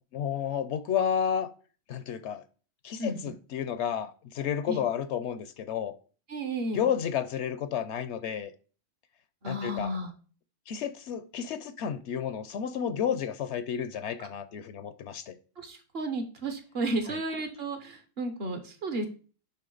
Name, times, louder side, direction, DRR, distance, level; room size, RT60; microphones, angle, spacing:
voice 1, 0.1-1.5 1.9-2.4 2.8-5.9 6.7-8.5 9.4-9.9 10.7-15.3 17.1-17.2, left 8 dB, 70° left, 0.8 m, -31 dB
voice 2, 6.3-6.8 9.4-10.1 14.2-14.3 15.6-19.1, right 1 dB, 55° right, 1.1 m, -33 dB
9.9 x 3.6 x 3.9 m
omnidirectional pair, 1.3 m